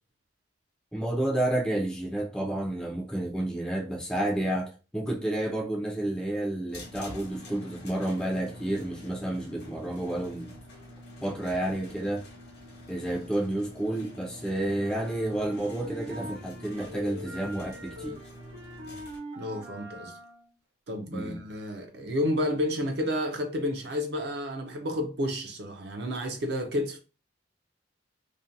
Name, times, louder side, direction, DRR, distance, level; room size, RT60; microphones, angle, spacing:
voice 1, 0.9-10.5 11.2-12.3 12.9-18.2 21.1-21.4, right 1 dB, 5° left, 0.4 m, -30 dB
sound 1, 6.7-19.2, left 1 dB, 60° left, 0.9 m, -47 dB
sound 2, 14.8-20.5, left 1 dB, 75° right, 0.9 m, -43 dB
voice 2, 19.4-20.2 20.9-27.0, left 1 dB, 60° right, 0.4 m, -31 dB
2.5 x 2.1 x 2.5 m
head